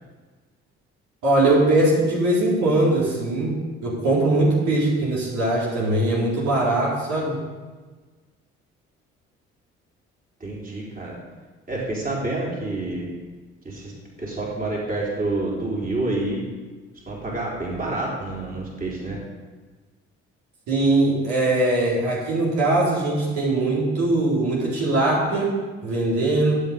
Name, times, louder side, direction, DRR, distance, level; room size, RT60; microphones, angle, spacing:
voice 1, 1.2-3.6 3.8-7.4 20.7-25.5 25.8-26.6, right 2 dB, 70° right, -6 dB, 4.1 m, -21 dB
voice 2, 10.4-11.2 11.7-13.1 13.6-13.9 14.2-16.4 17.1-19.2, right 2 dB, 30° right, -4 dB, 3.9 m, -28 dB
12.0 x 7.9 x 5.1 m, 1.4 s
hypercardioid pair, 60°, 31 cm